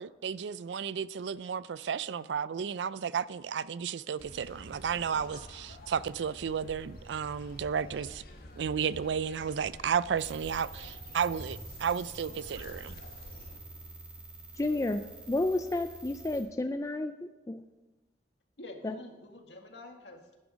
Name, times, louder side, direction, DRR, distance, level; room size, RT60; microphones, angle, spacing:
voice 1, 0.0-8.2 8.6-12.9, right 7 dB, 90° right, 0.4 m, -33 dB
sound 1, 4.2-13.6, left 1 dB, 55° left, 1.5 m, -48 dB
sound 2, 10.2-16.4, right 2 dB, 5° right, 2.2 m, -48 dB
voice 2, 14.6-15.0 15.3-17.1 17.5-17.6 18.8-18.9, left 2 dB, 20° left, 0.4 m, -30 dB
voice 3, 18.6-20.4, left 1 dB, 85° left, 1.8 m, -47 dB
11.0 x 10.5 x 5.1 m
head